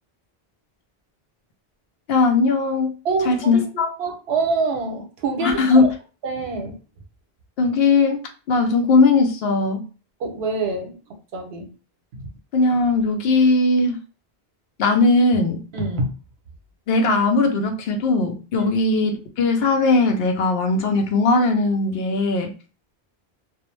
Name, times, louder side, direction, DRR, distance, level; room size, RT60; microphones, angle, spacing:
voice 1, 2.1-2.9 3.3-3.9 5.4-5.8 7.6-8.2 8.5-9.8 12.5-14.0 14.8-15.6 16.9-22.5, left 3 dB, 75° left, 0.8 m, -19 dB
voice 2, 3.0-3.7 4.0-5.9 6.2-6.8 10.2-11.0 11.3-11.7 12.1-12.3 15.7-16.1 18.6-18.7, right 3 dB, 85° right, 0.9 m, -25 dB
2.4 x 2.0 x 3.0 m
omnidirectional pair, 1.0 m